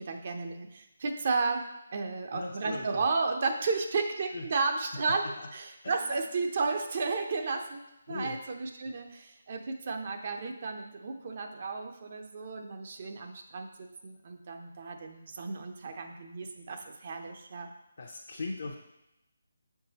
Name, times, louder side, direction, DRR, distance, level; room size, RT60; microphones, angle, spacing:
voice 1, 0.0-1.6 1.9-17.7, right 4 dB, 45° right, 4 dB, 0.6 m, -33 dB
voice 2, 2.3-3.0 4.3-4.4 5.8-5.9 8.1-8.4 18.0-18.7, left 3 dB, 55° left, -1 dB, 0.7 m, -38 dB
7.5 x 4.6 x 2.9 m, 0.90 s
figure-of-eight pair, 150°, 0 cm